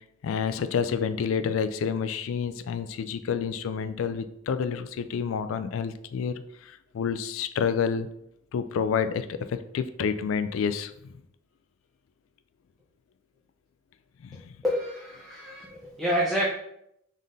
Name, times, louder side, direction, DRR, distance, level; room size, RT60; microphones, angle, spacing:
voice 1, 0.2-8.1 8.5-11.2 14.2-14.5, left 6 dB, 75° left, 11 dB, 0.3 m, -29 dB
voice 2, 14.6-16.5, equal, ahead, -6 dB, 0.7 m, -28 dB
5.5 x 3.7 x 2.6 m, 0.77 s
head